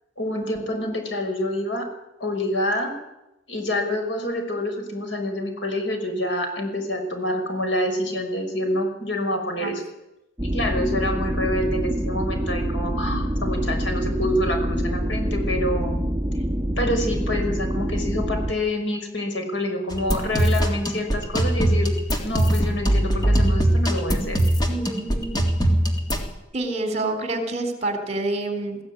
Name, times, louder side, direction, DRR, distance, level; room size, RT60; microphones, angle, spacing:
voice 1, 0.2-1.9 2.2-2.9 3.5-9.8 10.4-16.0 16.8-21.9 22.2-24.4, left 1 dB, 75° left, 5 dB, 5.8 m, -27 dB
sound 1, 10.4-18.5, equal, 10° right, 1.7 m, -26 dB
sound 2, 19.9-26.3, right 1 dB, 20° left, 3.4 m, -22 dB
voice 2, 24.7-25.5 26.5-28.8, right 2 dB, 35° right, 6 dB, 3.9 m, -27 dB
22.0 x 16.0 x 9.8 m, 0.93 s
head